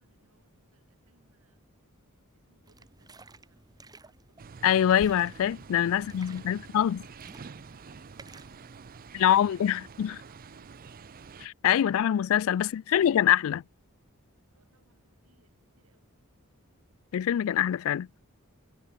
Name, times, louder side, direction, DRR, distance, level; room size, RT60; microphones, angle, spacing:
voice 1, 0.0-1.8 2.1-4.7 5.9-9.9 10.3-11.2 12.3-13.2 14.5-16.2, right 3 dB, 85° right, 7.0 m, -69 dB
sound 1, 2.6-9.4, right 3 dB, 20° right, 1.3 m, -55 dB
sound 2, 4.4-11.5, right 5 dB, 40° right, 0.5 m, -48 dB
voice 2, 4.6-7.0 9.1-10.2 11.4-13.6 17.1-18.1, left 10 dB, 65° left, 0.3 m, -24 dB
Percussion, 5.0-9.8, left 1 dB, 35° left, 1.4 m, -55 dB
head